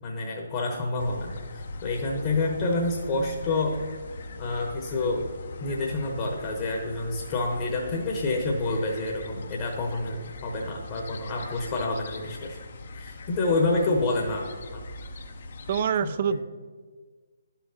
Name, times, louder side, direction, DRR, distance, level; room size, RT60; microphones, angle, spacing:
voice 1, 0.0-3.8 4.4-5.3 5.6-12.6 12.9-14.8 16.0-16.4, left 2 dB, 30° left, 0 dB, 0.9 m, -28 dB
sound 1, 1.0-15.8, left 2 dB, 55° left, 0.7 m, -41 dB
voice 2, 15.7-16.4, right 7 dB, 40° right, 13 dB, 0.4 m, -25 dB
11.0 x 5.7 x 2.8 m, 1.5 s
figure-of-eight pair, 140°, 0 cm